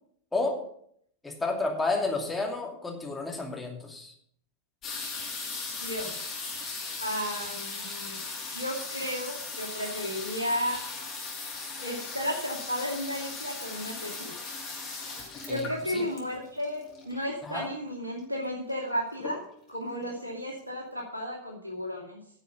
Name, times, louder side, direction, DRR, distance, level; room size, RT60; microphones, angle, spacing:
voice 1, 1.2-4.1 15.5-16.1 17.4-17.7, left 3 dB, 10° left, 0 dB, 2.6 m, -31 dB
sound 1, 4.8-17.4 18.2-18.3 18.5-18.9 19.2-19.8 20.3-20.4 20.6-20.7, left 3 dB, 30° left, 4.6 m, -38 dB
voice 2, 5.8-6.5 7.0-8.2 8.5-10.8 11.8-14.3 15.5-19.4 19.7-22.2, equal, 80° right, -4 dB, 2.5 m, -33 dB
11.0 x 6.9 x 6.9 m, 0.66 s
figure-of-eight pair, 90°, 0 cm